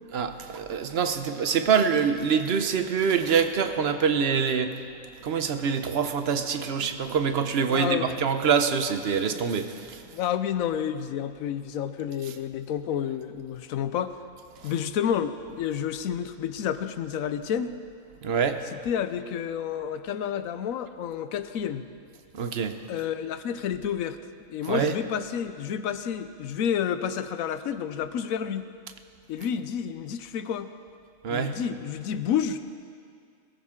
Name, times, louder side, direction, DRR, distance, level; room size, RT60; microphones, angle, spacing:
voice 1, 0.1-4.9 5.2-10.0 14.6-14.7 18.2-18.6 22.3-22.8 24.7-25.0 31.2-31.6, right 6 dB, 55° right, 9 dB, 0.9 m, -25 dB
voice 2, 7.7-8.1 10.1-14.1 14.6-17.7 18.9-21.8 22.9-24.2 24.5-28.6 29.3-30.7 31.3-32.7, left 8 dB, 85° left, 11 dB, 1.1 m, -30 dB
20.5 x 14.0 x 3.7 m, 2.3 s
omnidirectional pair, 1.4 m